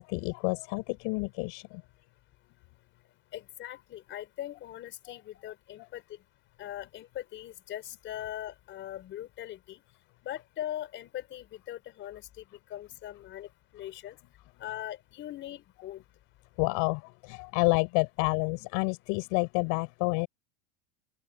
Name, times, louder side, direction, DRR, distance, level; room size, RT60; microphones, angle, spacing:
voice 1, 0.0-1.8 16.6-20.3, left 33 dB, 50° left, 7.8 m, -29 dB
voice 2, 3.3-6.0 6.6-9.8 10.2-12.4 12.7-13.5 13.7-14.2 14.6-16.0, left 12 dB, 30° left, 4.9 m, -40 dB
open air
supercardioid pair, 170°, 39 cm